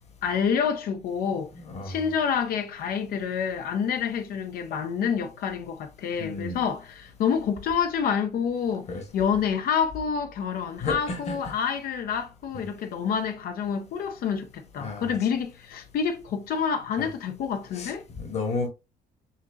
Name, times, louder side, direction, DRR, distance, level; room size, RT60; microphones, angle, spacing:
voice 1, 0.2-1.5 1.9-8.9 9.1-18.0, left 7 dB, 60° left, 0.6 m, -28 dB
voice 2, 1.6-2.0 6.2-6.6 8.9-9.0 10.8-11.4 14.8-15.1 17.0-17.1 17.7-18.7, left 3 dB, 40° left, 1.3 m, -32 dB
5.8 x 2.9 x 2.4 m
cardioid pair, 110°, 17 cm